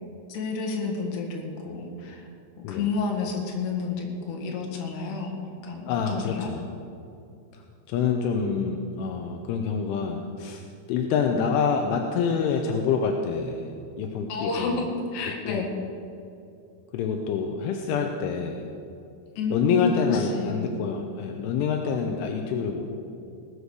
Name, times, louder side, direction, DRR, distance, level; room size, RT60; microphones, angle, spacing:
voice 1, 0.3-2.3 2.7-5.3 5.6-6.5 14.3-15.7 19.4-20.7, left 4 dB, 65° left, 1 dB, 3.7 m, -30 dB
voice 2, 5.9-6.7 7.5-14.8 15.5-15.7 16.9-18.7 19.5-23.0, left 6 dB, 80° left, 3 dB, 3.2 m, -27 dB
19.0 x 8.3 x 6.5 m, 2.6 s
omnidirectional pair, 5.7 m